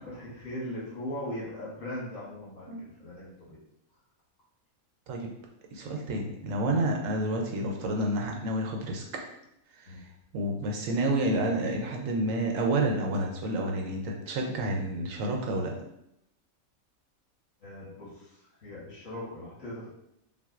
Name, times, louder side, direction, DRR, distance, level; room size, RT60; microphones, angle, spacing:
voice 1, 0.0-3.6 9.9-10.1 17.6-20.0, left 1 dB, 65° left, -7 dB, 1.9 m, -39 dB
voice 2, 5.7-9.0 9.8-9.9 10.3-15.7, right 1 dB, 70° right, 1 dB, 1.0 m, -29 dB
5.8 x 2.2 x 2.4 m, 0.80 s
omnidirectional pair, 1.5 m